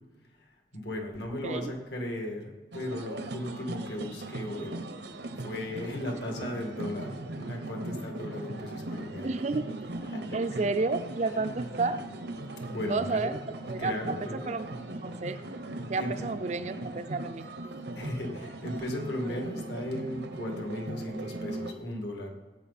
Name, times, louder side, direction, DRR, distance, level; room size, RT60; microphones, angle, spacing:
voice 1, 0.4-4.9 5.4-9.3 10.1-10.7 12.7-13.3 13.8-14.6 15.9-16.1 17.9-22.3, left 1 dB, 70° left, 1 dB, 2.1 m, -36 dB
sound 1, 2.7-21.7, right 2 dB, 75° right, 0.9 m, -39 dB
voice 2, 9.2-9.7 10.3-12.0 12.9-13.4 13.7-15.4 15.9-17.5, right 3 dB, 40° right, 11 dB, 0.5 m, -31 dB
18.0 x 8.3 x 4.2 m, 1.3 s
head